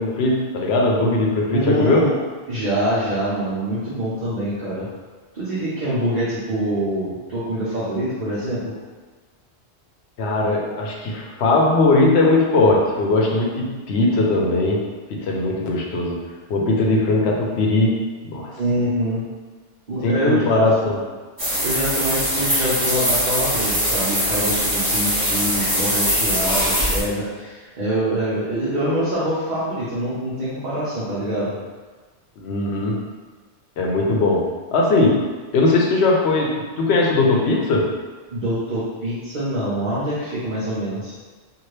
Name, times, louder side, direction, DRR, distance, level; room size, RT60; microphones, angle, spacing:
voice 1, 0.0-2.1 10.2-14.8 15.1-16.2 16.5-17.9 18.3-18.6 20.0-21.0 32.4-33.0 33.8-34.4 34.7-35.2 35.5-37.9, left 2 dB, 75° left, -1 dB, 0.9 m, -19 dB
voice 2, 1.5-2.2 2.5-4.9 5.3-8.7 18.6-19.2 19.9-20.9 21.6-31.5 38.3-41.1, right 1 dB, 50° right, -10 dB, 0.8 m, -25 dB
sound 1, 21.4-27.0, equal, 20° right, 0.9 m, -21 dB
2.8 x 2.5 x 3.2 m, 1.4 s
omnidirectional pair, 1.1 m